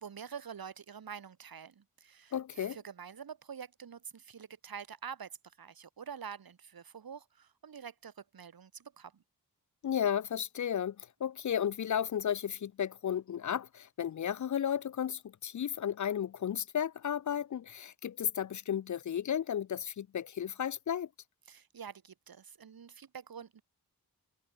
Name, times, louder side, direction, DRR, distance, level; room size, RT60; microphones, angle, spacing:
voice 1, 0.0-9.2 21.5-23.6, right 7 dB, 70° right, 1.9 m, -47 dB
voice 2, 2.3-2.8 9.8-21.1, left 9 dB, 55° left, 0.5 m, -34 dB
wide cardioid pair, 135°, 37 cm